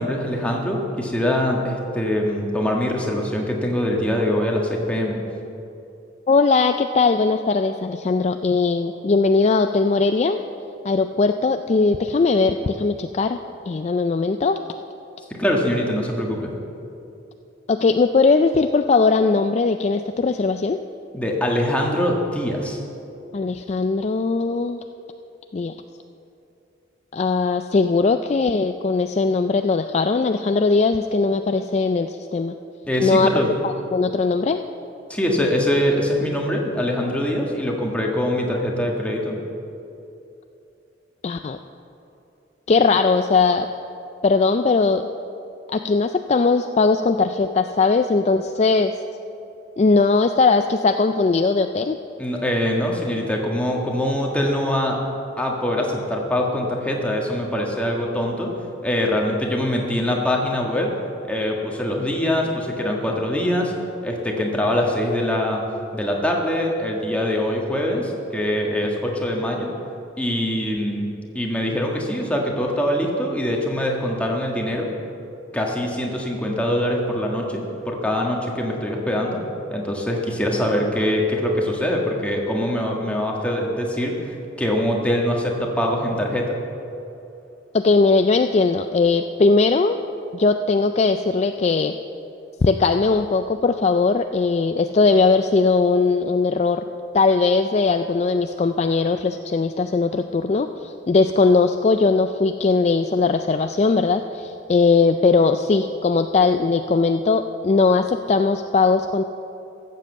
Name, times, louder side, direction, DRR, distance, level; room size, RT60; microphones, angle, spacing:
voice 1, 0.0-5.2 15.3-16.5 21.1-22.8 32.9-33.5 35.1-39.4 52.2-55.0 55.4-60.9 61.3-63.7 64.0-65.6 65.9-69.7 70.2-71.1 71.3-74.9 75.5-79.4 79.7-86.6, left 1 dB, 5° left, -1 dB, 1.5 m, -23 dB
voice 2, 6.3-10.4 10.8-13.4 13.7-14.6 17.7-20.8 23.3-24.8 25.5-25.7 27.1-32.5 33.0-34.6 41.2-41.6 42.7-43.7 44.2-45.1 45.7-48.9 49.8-52.0 87.7-90.0 90.3-91.9 92.6-96.8 97.1-109.2, left 4 dB, 35° left, 8 dB, 0.3 m, -19 dB
14.5 x 7.6 x 7.5 m, 2.8 s
head